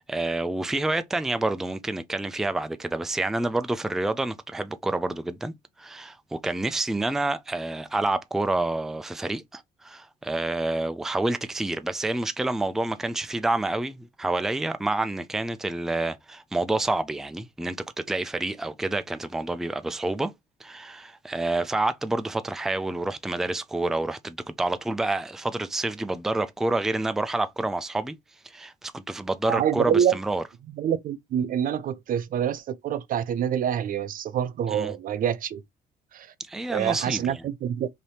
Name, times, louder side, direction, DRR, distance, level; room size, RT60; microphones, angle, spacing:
voice 1, 0.0-20.3 20.6-28.1 28.4-30.4 34.7-34.9 36.4-37.4, right 2 dB, ahead, 0.4 m, -28 dB
voice 2, 29.4-30.2 30.7-35.6 36.1-36.3 36.7-37.9, right 9 dB, 55° right, 0.5 m, -26 dB
3.3 x 2.8 x 4.1 m
cardioid pair, 115°, 17 cm